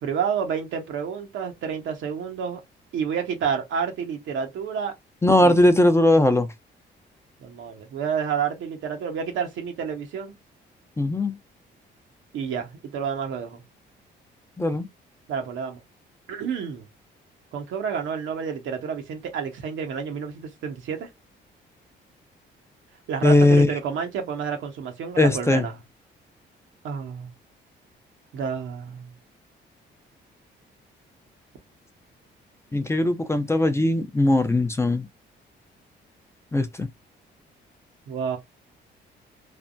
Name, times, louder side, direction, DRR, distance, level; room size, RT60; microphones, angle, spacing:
voice 1, 0.0-2.6 2.9-4.9 5.4-5.5 7.4-10.3 12.3-13.6 15.3-15.8 16.3-16.9 17.5-21.1 23.1-25.8 26.8-27.3 28.3-29.1 38.1-38.4, right 7 dB, 80° right, 0.9 m, -29 dB
voice 2, 5.2-6.5 11.0-11.3 14.6-14.9 23.2-23.7 25.2-25.6 32.7-35.1 36.5-36.9, left 1 dB, 15° left, 0.5 m, -19 dB
3.3 x 2.1 x 2.5 m
cardioid pair, 90°, 20 cm